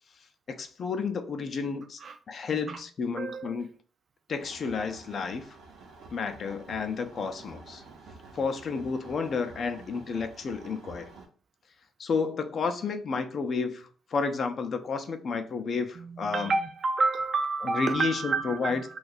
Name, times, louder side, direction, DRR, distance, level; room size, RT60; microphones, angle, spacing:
voice 1, 0.5-2.0 2.3-3.7 4.3-5.6 6.1-7.8 8.3-11.1 12.0-16.5 17.6-18.8, left 5 dB, 50° left, 0.4 m, -31 dB
voice 2, 2.5-2.8 3.2-3.6 16.0-18.8, right 3 dB, 45° right, 0.4 m, -29 dB
sound 1, 4.4-11.3, right 3 dB, 80° right, 0.7 m, -49 dB
2.7 x 2.3 x 3.9 m
cardioid pair, 90°, 0 cm